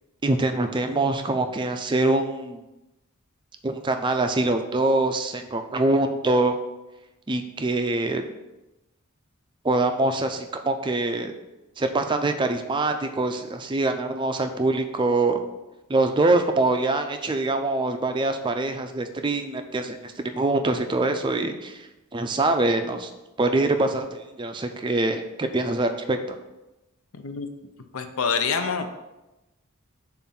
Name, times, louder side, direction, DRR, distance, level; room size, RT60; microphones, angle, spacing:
voice 1, 0.2-2.6 3.6-6.6 7.3-8.2 9.6-11.3 11.8-15.4 15.9-21.8 22.1-23.1 23.4-26.4, right 2 dB, 20° right, 6 dB, 0.4 m, -24 dB
voice 2, 27.1-27.5 27.9-29.0, left 5 dB, 75° left, 7 dB, 0.6 m, -26 dB
7.0 x 2.6 x 5.7 m, 0.99 s
head